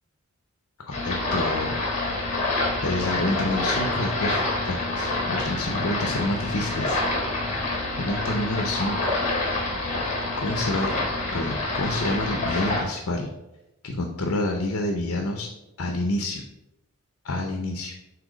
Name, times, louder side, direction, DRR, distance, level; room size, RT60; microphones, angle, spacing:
voice 1, 0.9-1.8 2.8-7.0 8.0-9.2 10.4-10.9 11.3-13.3 13.8-15.5 15.8-16.4 17.2-17.9, left 1 dB, 65° left, 3 dB, 0.7 m, -28 dB
sound 1, 0.9-12.8, left 2 dB, 30° left, 1.5 m, -27 dB
7.8 x 2.9 x 5.0 m, 0.94 s
head